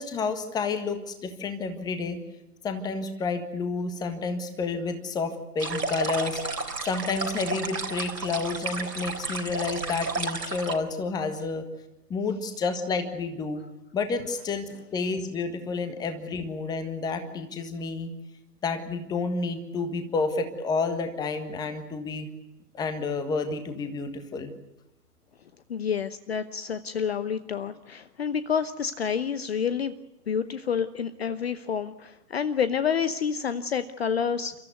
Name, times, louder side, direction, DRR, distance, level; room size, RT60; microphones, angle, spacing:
voice 1, 0.0-2.2 2.6-6.4 6.8-11.6 12.1-13.6 13.9-18.1 18.6-22.3 22.7-24.5, left 4 dB, 10° left, 8 dB, 1.5 m, -30 dB
sound 1, 5.6-10.8, right 3 dB, 80° right, 3.7 m, -32 dB
voice 2, 25.7-29.9 30.3-34.5, left 7 dB, 40° left, 13 dB, 0.9 m, -28 dB
30.0 x 14.5 x 9.4 m, 0.95 s
figure-of-eight pair, 130°, 48 cm